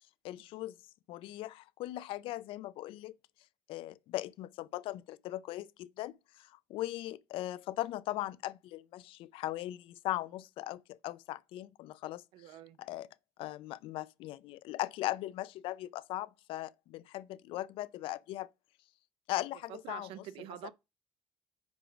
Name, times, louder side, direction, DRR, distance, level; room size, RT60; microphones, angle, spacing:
voice 1, 0.2-0.7 1.1-3.1 3.7-6.1 6.4-12.2 12.8-13.1 13.4-18.5 19.3-20.1, left 15 dB, 75° left, 0.3 m, -39 dB
voice 2, 12.3-12.8 19.7-20.7, right 12 dB, 85° right, 0.5 m, -46 dB
5.0 x 4.7 x 5.1 m
cardioid pair, 170°, 9 cm